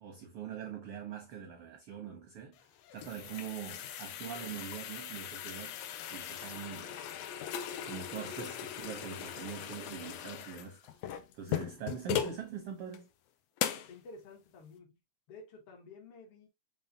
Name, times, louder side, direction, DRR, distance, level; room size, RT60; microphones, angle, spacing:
voice 1, 0.0-2.6 2.9-5.7 6.0-7.0 7.8-10.9 11.3-13.1, right 8 dB, 75° right, 1.3 m, -43 dB
sound 1, 2.6-12.4 12.9-13.0 13.6-14.0, left 10 dB, 80° left, 1.5 m, -39 dB
voice 2, 13.7-15.0 15.3-16.5, left 3 dB, 55° left, 2.0 m, -52 dB
5.5 x 3.5 x 2.7 m
omnidirectional pair, 3.4 m